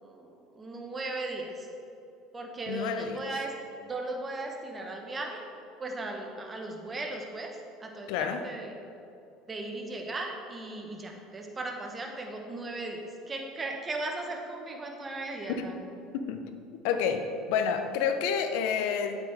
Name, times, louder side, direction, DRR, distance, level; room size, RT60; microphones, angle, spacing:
voice 1, 0.0-1.7 2.3-5.4 5.8-8.7 9.5-15.8, right 2 dB, 25° right, 2 dB, 1.3 m, -37 dB
voice 2, 2.7-3.2 8.1-8.4 15.6-15.7 16.1-16.4 16.8-19.2, left 7 dB, 70° left, 7 dB, 0.7 m, -29 dB
8.2 x 8.0 x 4.8 m, 2.8 s
hypercardioid pair, 75°, 0 cm